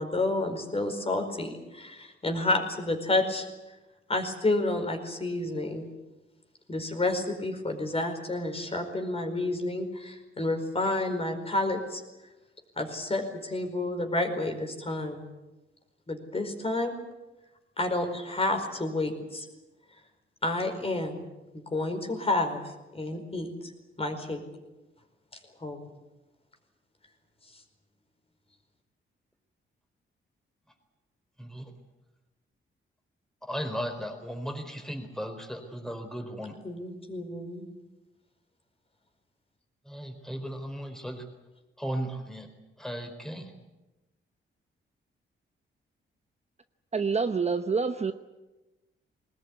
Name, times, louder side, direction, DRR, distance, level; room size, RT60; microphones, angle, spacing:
voice 1, 0.0-3.5 4.1-5.9 6.7-12.0 12.8-15.2 16.1-16.9 17.8-19.5 20.4-21.3 21.5-22.6 22.9-23.5 24.0-24.4 25.6-25.9 36.6-37.7, left 2 dB, 30° left, 4 dB, 4.9 m, -30 dB
voice 2, 33.5-36.5 39.9-41.2 41.8-42.5 42.8-43.5, equal, ahead, 5 dB, 4.4 m, -36 dB
voice 3, 46.9-48.1, right 5 dB, 30° right, 8 dB, 0.9 m, -27 dB
21.5 x 20.0 x 9.6 m, 1.1 s
cardioid pair, 110°, 21 cm